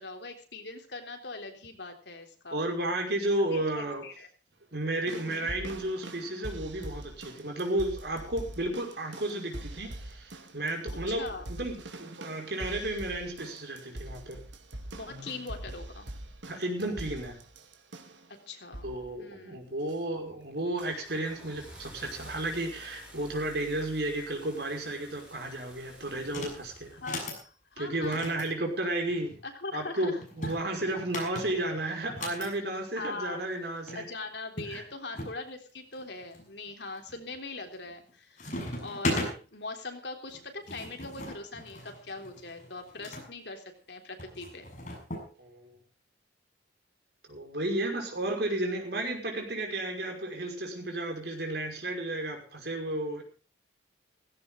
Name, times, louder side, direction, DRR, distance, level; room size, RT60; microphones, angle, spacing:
voice 1, 0.0-2.6 3.5-4.3 5.1-5.5 11.1-11.5 14.9-16.1 18.5-19.6 26.9-28.3 29.4-30.2 30.8-30.9 33.0-33.4 33.9-44.7, left 3 dB, 65° left, 5 dB, 3.5 m, -41 dB
voice 2, 2.5-4.0 4.7-14.4 16.5-17.4 18.8-26.9 27.8-29.4 29.7-34.0 34.7-34.8 45.4-45.7 47.3-53.2, right 1 dB, 55° right, 3 dB, 5.6 m, -33 dB
sound 1, 5.1-18.3 18.7-19.1 19.9-20.0, right 1 dB, 80° right, 2.6 m, -43 dB
Car / Engine starting, 19.6-19.9 20.4-27.4, equal, 5° right, 7.2 m, -50 dB
sound 2, 26.2-26.6 26.9-27.4 28.0-29.4 30.2-32.5 33.6-33.7 33.9-34.0 34.6-35.4 35.9-36.4 37.0-37.4 37.7-38.1 38.4-39.3 40.3-43.3 44.2-45.3, left 1 dB, 40° left, 6.8 m, -37 dB
17.0 x 16.5 x 3.8 m, 0.36 s
head